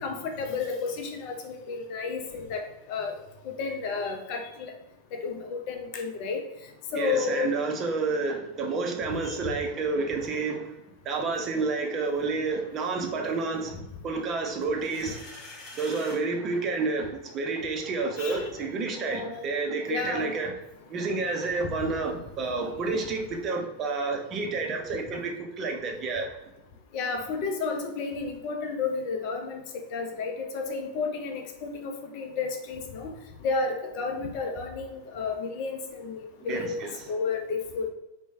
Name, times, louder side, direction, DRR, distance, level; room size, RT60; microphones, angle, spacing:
voice 1, 0.0-2.6 2.9-3.1 3.4-4.7 5.2-6.4 6.9-7.5 9.2-9.5 18.2-18.5 19.0-19.4 19.9-20.3 21.8-21.9 26.9-29.6 29.9-33.1 33.4-36.8 37.1-37.9, left 4 dB, 45° left, 4 dB, 0.5 m, -32 dB
voice 2, 6.9-10.7 11.0-13.7 14.0-15.3 15.8-20.6 20.9-26.3 36.4-37.1, right 3 dB, 30° right, 2 dB, 0.5 m, -30 dB
sound 1, 14.6-16.2, left 2 dB, 15° left, 1.1 m, -45 dB
3.0 x 2.1 x 3.4 m, 0.92 s
figure-of-eight pair, 90°, 0 cm